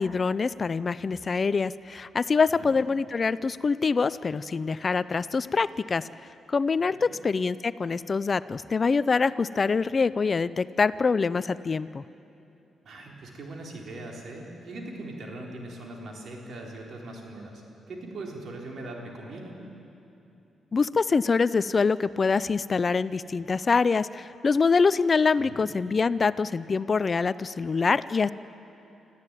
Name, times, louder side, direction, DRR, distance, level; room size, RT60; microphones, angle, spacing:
voice 1, 0.0-6.1 6.5-12.0 20.7-28.3, left 4 dB, 40° left, 16 dB, 0.4 m, -25 dB
voice 2, 12.8-17.6 17.9-19.6 25.4-25.7, right 2 dB, 65° right, 0 dB, 4.2 m, -40 dB
26.0 x 14.0 x 9.2 m, 2.8 s
cardioid pair, 90°, 0 cm